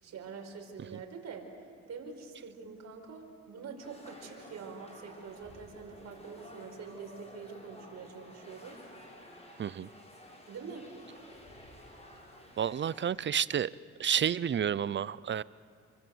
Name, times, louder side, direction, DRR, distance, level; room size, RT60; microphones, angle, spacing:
voice 1, 0.0-1.4 1.9-8.8 10.5-10.8, right 5 dB, 60° right, 2 dB, 5.3 m, -45 dB
sound 1, 3.8-13.0, left 1 dB, 20° left, 6.8 m, -52 dB
voice 2, 9.6-9.9 12.6-13.7 14.0-15.4, right 8 dB, 40° right, 19 dB, 0.6 m, -30 dB
28.5 x 23.5 x 8.0 m, 2.1 s
cardioid pair, 90°, 30 cm